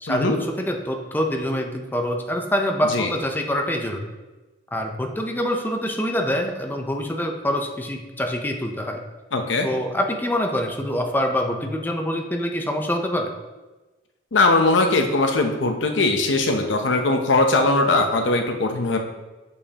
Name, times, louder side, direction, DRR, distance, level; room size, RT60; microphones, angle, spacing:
voice 1, 0.0-4.1 4.7-9.0 9.6-13.3, equal, 10° left, 3 dB, 0.5 m, -25 dB
voice 2, 9.3-9.7 14.3-19.0, left 2 dB, 75° left, 5 dB, 0.7 m, -20 dB
6.6 x 5.4 x 2.8 m, 1.2 s
head